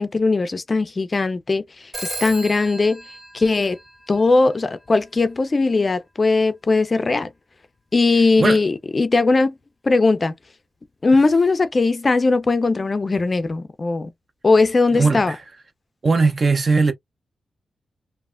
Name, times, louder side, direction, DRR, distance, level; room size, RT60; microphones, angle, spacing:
voice 1, 0.0-3.0 3.3-3.8 4.1-7.3 7.9-9.6 9.8-10.3 11.0-14.1 14.4-15.4, left 3 dB, 35° left, 0.4 m, -19 dB
Telephone, 1.9-4.4, right 2 dB, 20° right, 1.7 m, -35 dB
voice 2, 14.9-15.4 16.0-16.9, right 4 dB, 40° right, 0.5 m, -18 dB
3.2 x 2.1 x 2.4 m
wide cardioid pair, 110°, 0 cm